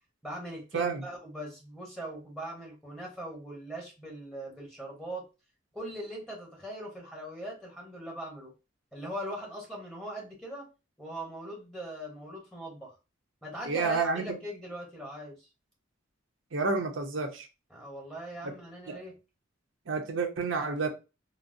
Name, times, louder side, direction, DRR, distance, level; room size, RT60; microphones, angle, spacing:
voice 1, 0.2-5.3 5.7-8.5 8.9-10.7 11.0-12.9 13.4-15.5 17.7-19.2, right 1 dB, ahead, 0.9 m, -40 dB
voice 2, 0.7-1.1 13.7-14.4 16.5-17.5 18.4-18.5 18.9-19.0 19.9-20.9, right 4 dB, 70° right, 0.7 m, -30 dB
3.9 x 2.0 x 2.4 m
head